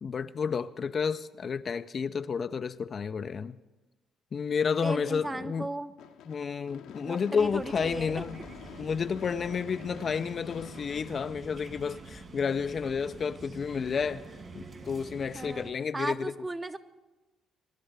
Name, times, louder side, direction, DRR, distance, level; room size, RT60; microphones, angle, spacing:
voice 1, 0.0-3.6 4.3-5.7 6.3-8.4 8.8-14.2 14.5-16.3, left 6 dB, 45° left, 0.4 m, -31 dB
voice 2, 4.8-5.9 7.0-8.2 15.3-15.6 15.9-16.8, right 2 dB, 20° right, 0.8 m, -36 dB
Gunshot gunfire / Fireworks, 6.0-12.2, left 9 dB, 75° left, 0.8 m, -49 dB
sound 1, 6.6-12.2, right 3 dB, 85° right, 1.5 m, -62 dB
sound 2, 7.4-15.7, right 3 dB, 45° right, 2.9 m, -46 dB
23.0 x 11.0 x 3.4 m
hypercardioid pair, 55°, 0 cm